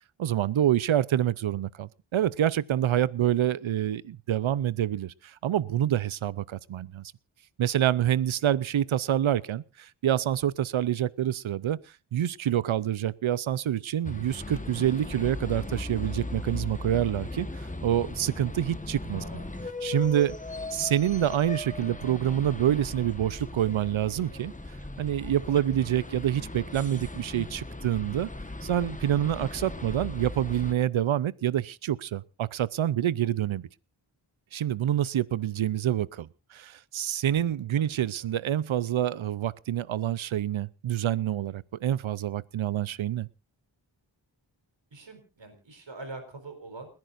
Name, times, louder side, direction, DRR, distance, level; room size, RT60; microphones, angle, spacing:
voice 1, 0.2-7.1 7.6-11.8 12.1-17.5 17.8-19.2 19.8-20.4 20.7-24.5 25.0-28.3 28.6-33.7 34.5-43.3, right 11 dB, 85° right, 0.6 m, -27 dB
voice 2, 8.3-8.7 19.1-19.7 20.0-20.1 35.4-35.6 37.8-38.4 44.9-46.9, right 2 dB, 65° right, 4.4 m, -45 dB
sound 1, 14.0-30.7, left 2 dB, 15° left, 1.3 m, -38 dB
29.5 x 10.5 x 2.6 m
wide cardioid pair, 75°, 47 cm